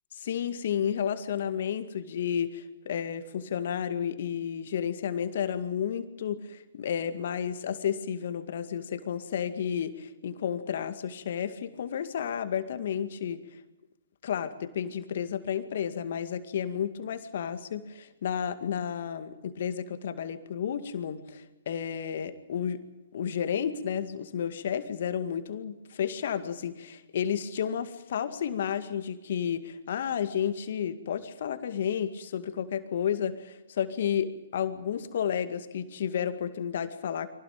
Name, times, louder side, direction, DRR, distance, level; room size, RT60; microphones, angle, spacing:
voice 1, 0.2-13.4 14.2-22.8 23.1-37.3, left 8 dB, 55° left, 10 dB, 2.1 m, -32 dB
24.5 x 18.0 x 8.9 m, 1.0 s
figure-of-eight pair, 125°, 0 cm